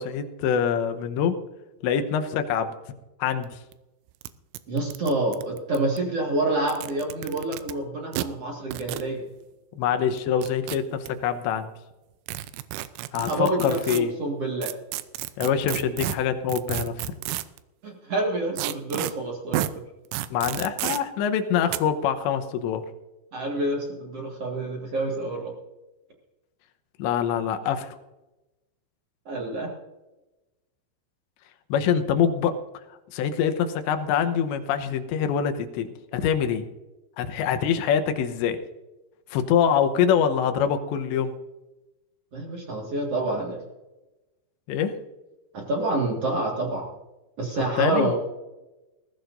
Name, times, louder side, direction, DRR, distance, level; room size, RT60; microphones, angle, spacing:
voice 1, 0.0-1.4 1.8-2.7 3.2-3.6 9.8-11.7 13.1-14.1 15.4-17.1 20.3-22.8 27.0-27.9 31.7-32.6 33.1-36.7 37.2-38.6 39.3-41.3 44.7-44.9 47.8-48.1, left 8 dB, 75° left, 8 dB, 2.9 m, -24 dB
sound 1, 3.4-3.5 3.7-3.8 4.2-4.3 4.5-6.0 6.6-7.7 8.1-8.3 8.7-9.1 10.2-11.1 12.3-14.0 14.6-17.6 18.6-19.1 19.5-19.7 20.1-21.0 21.7-21.8, right 15 dB, 80° right, 3.1 m, -31 dB
voice 2, 4.7-9.2 13.3-14.7 17.8-19.6 23.3-25.5 29.2-29.7 42.3-43.6 45.5-46.9 47.4-48.1, right 2 dB, 65° right, -1 dB, 1.5 m, -27 dB
20.0 x 16.0 x 2.6 m, 1.0 s
omnidirectional pair, 5.9 m